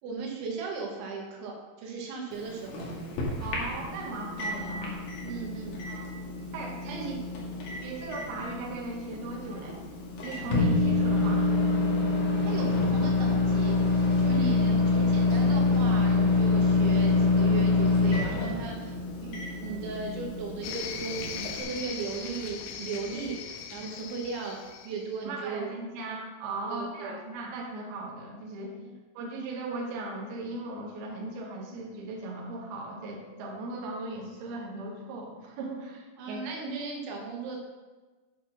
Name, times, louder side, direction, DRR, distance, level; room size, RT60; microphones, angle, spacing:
voice 1, 0.0-2.9 5.2-5.8 6.8-7.2 12.4-13.8 14.2-19.0 19.2-24.6 24.9-25.8 26.7-27.2 28.8-28.9 36.2-37.6, right 5 dB, 85° right, 0 dB, 3.7 m, -37 dB
Microwave oven, 2.3-21.6, left 3 dB, 60° left, 3.4 m, -27 dB
voice 2, 3.4-5.1 5.9-6.0 6.5-7.1 7.8-9.8 10.2-11.4 14.3-14.5 23.8-24.0 25.2-28.7 29.1-36.4, right 2 dB, 65° right, -2 dB, 3.2 m, -37 dB
sound 1, 20.6-25.1, left 8 dB, 90° left, 3.0 m, -39 dB
9.2 x 5.6 x 6.1 m, 1.3 s
omnidirectional pair, 5.3 m